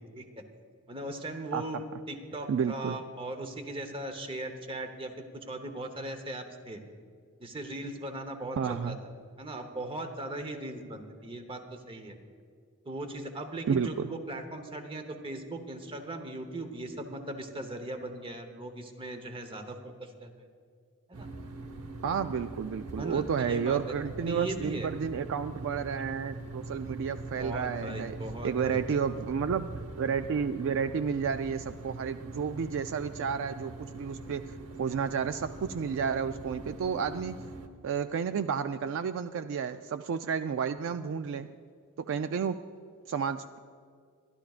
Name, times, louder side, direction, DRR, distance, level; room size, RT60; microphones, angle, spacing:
voice 1, 0.9-1.8 2.1-6.8 7.4-9.1 9.4-12.2 12.9-20.3 21.1-21.3 22.9-23.8 24.3-24.9 27.3-28.8, right 1 dB, 25° right, 7 dB, 1.0 m, -39 dB
voice 2, 2.5-3.0 8.6-9.0 13.7-14.1 22.0-28.2 28.4-29.7 30.0-37.4 37.8-41.5 42.0-42.6 43.1-43.6, right 6 dB, 60° right, 10 dB, 0.3 m, -31 dB
sound 1, 21.1-37.7, right 2 dB, 75° right, 0.9 m, -42 dB
24.5 x 11.5 x 2.4 m, 2.2 s
head